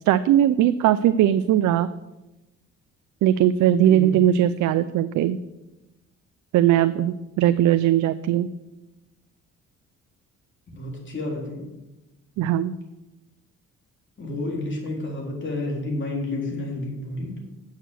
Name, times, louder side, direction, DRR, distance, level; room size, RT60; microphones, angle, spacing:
voice 1, 0.1-1.9 3.2-5.4 6.5-8.5 12.4-12.8, right 11 dB, 70° right, 13 dB, 0.5 m, -19 dB
voice 2, 10.7-11.6 14.2-17.4, left 2 dB, 40° left, -1 dB, 3.6 m, -30 dB
8.0 x 6.6 x 7.6 m, 1.0 s
cardioid pair, 90°, 30 cm